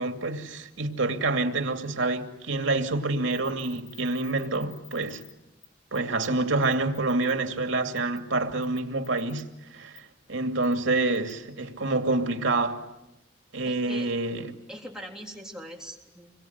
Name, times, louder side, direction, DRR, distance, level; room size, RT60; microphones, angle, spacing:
voice 1, 0.0-5.2 5.9-12.8 13.5-14.6, right 2 dB, 85° right, 2.6 m, -27 dB
sound 1, 3.3-5.3 5.6-5.7 5.9-6.3 6.6-7.3 8.0-8.2 8.6-9.4 9.9-10.0 10.6-10.7 11.1-11.3, left 11 dB, 35° left, 7.1 m, -49 dB
voice 2, 13.7-14.1 14.7-16.3, equal, 5° right, 3.5 m, -41 dB
27.0 x 23.0 x 9.5 m
head